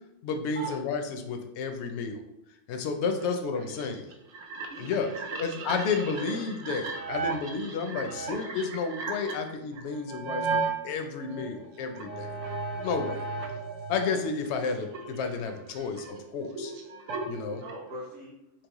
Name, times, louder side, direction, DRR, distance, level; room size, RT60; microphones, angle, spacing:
voice 1, 0.2-2.2 2.7-4.0 4.8-5.1 5.4-12.3 12.8-13.2 13.9-16.7 17.3-17.6, left 5 dB, 70° left, 5 dB, 0.8 m, -31 dB
sound 1, 3.7-10.8 11.3-14.2 14.4-18.0, right 4 dB, 80° right, 1.0 m, -35 dB
voice 2, 4.7-6.4 17.6-18.3, right 2 dB, 55° right, -8 dB, 1.1 m, -41 dB
5.8 x 2.0 x 3.0 m, 0.85 s
omnidirectional pair, 1.3 m